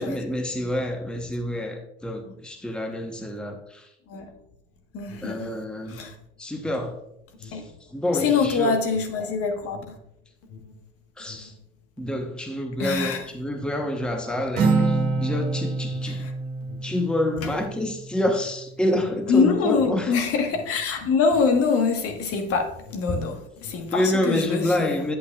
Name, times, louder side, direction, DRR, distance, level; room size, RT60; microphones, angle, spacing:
voice 1, 0.0-3.9 5.2-6.0 6.4-7.0 7.4-8.8 11.2-11.5 12.0-16.3 16.8-20.1 23.9-25.2, left 1 dB, 5° left, 0.9 m, -28 dB
Alarm, 4.7-22.5 22.7-24.0, left 5 dB, 75° left, 1.9 m, -47 dB
voice 2, 4.9-5.5 5.9-6.1 7.5-7.7 8.2-9.9 12.8-13.3 16.1-16.3 19.3-25.0, left 5 dB, 50° left, 1.3 m, -24 dB
Acoustic guitar, 14.6-18.2, right 3 dB, 50° right, 1.9 m, -26 dB
8.8 x 8.3 x 2.3 m
hypercardioid pair, 70°, 30 cm